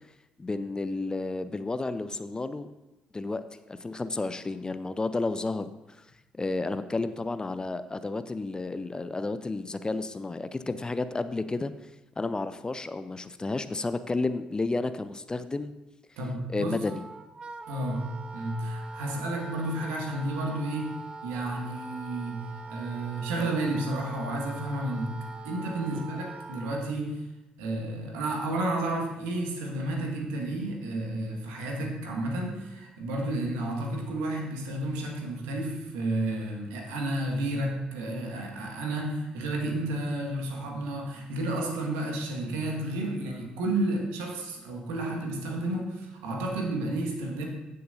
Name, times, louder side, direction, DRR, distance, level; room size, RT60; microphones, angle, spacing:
voice 1, 0.4-2.7 3.1-5.7 6.0-6.1 6.4-11.7 12.2-15.7 16.5-17.0 25.9-26.1, left 3 dB, 20° left, 12 dB, 0.5 m, -31 dB
voice 2, 16.2-16.8 17.7-27.2 27.6-47.4, right 1 dB, 70° right, 1 dB, 1.6 m, -31 dB
Wind instrument woodwind instrument, 16.8-26.8, right 3 dB, 25° right, 0.8 m, -43 dB
15.0 x 6.7 x 2.6 m, 1.0 s
figure-of-eight pair, 45°, 4 cm